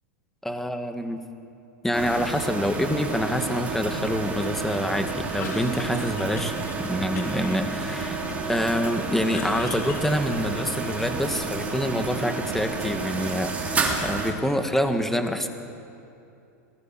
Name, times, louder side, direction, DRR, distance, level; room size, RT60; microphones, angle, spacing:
voice 1, 0.4-1.2 1.8-15.6, equal, 5° left, 6 dB, 1.8 m, -26 dB
sound 1, 1.9-14.3, right 4 dB, 15° right, 3.6 m, -30 dB
Cough, 5.2-6.8 7.2-8.6 9.0-10.9, left 5 dB, 85° left, 4.2 m, -40 dB
26.0 x 19.0 x 7.6 m, 2.6 s
supercardioid pair, 130°, 9 cm